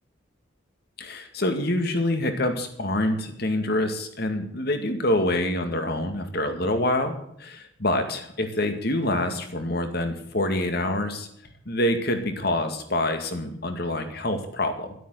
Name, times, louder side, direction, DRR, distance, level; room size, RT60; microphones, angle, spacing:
voice 1, 1.0-11.3 11.7-14.9, left 1 dB, 55° left, 7 dB, 2.2 m, -26 dB
12.5 x 9.2 x 9.4 m, 0.71 s
head